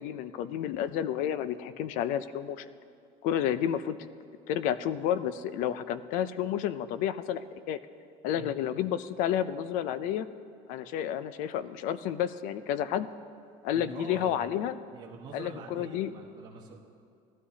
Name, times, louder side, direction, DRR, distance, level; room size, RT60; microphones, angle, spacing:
voice 1, 0.0-2.7 3.2-4.0 4.5-7.8 8.2-10.3 10.7-13.1 13.6-14.8 15.3-16.1, left 10 dB, 65° left, 14 dB, 0.5 m, -30 dB
voice 2, 13.7-14.4 14.9-16.8, right 5 dB, 30° right, -3 dB, 1.2 m, -45 dB
18.5 x 12.5 x 2.8 m, 2.4 s
cardioid pair, 170°, 15 cm